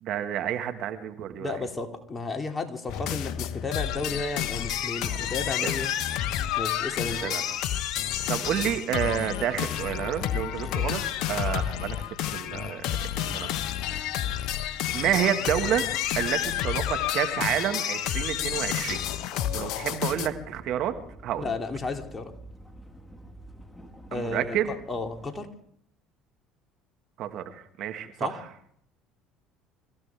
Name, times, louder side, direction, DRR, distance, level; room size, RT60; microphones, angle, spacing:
voice 1, 0.0-1.5 5.0-5.3 5.6-5.7 7.2-7.4 8.3-11.0 11.3-13.5 14.9-15.9 16.2-19.1 19.5-20.9 21.2-21.5 24.1-24.7 27.2-28.4, right 10 dB, 60° right, 7 dB, 1.7 m, -29 dB
voice 2, 1.4-5.9 6.6-7.4 10.3-10.5 21.4-22.3 24.1-25.5 28.2-28.4, left 3 dB, 25° left, 3 dB, 2.7 m, -33 dB
sound 1, 2.9-20.3, left 11 dB, 65° left, 1.0 m, -30 dB
sound 2, 19.8-25.4, right 1 dB, 5° left, 2.1 m, -48 dB
25.5 x 15.0 x 3.5 m, 0.68 s
hypercardioid pair, 70°, 0 cm